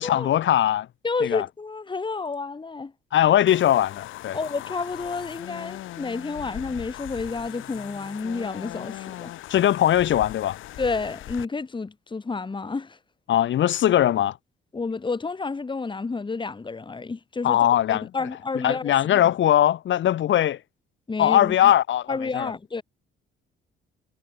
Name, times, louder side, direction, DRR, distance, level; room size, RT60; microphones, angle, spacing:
voice 1, 0.0-0.9 1.2-1.5 3.1-4.4 9.5-10.6 13.3-14.4 17.4-18.1 18.6-20.6 21.2-22.5, left 11 dB, 70° left, 2.3 m, -20 dB
voice 2, 1.0-2.9 4.3-9.3 10.8-13.0 14.7-17.6 17.9-19.3 21.1-21.7 22.1-22.8, left 4 dB, 25° left, 2.0 m, -30 dB
sound 1, 3.5-11.5, left 15 dB, 85° left, 1.7 m, -39 dB
cardioid pair, 90°, 20 cm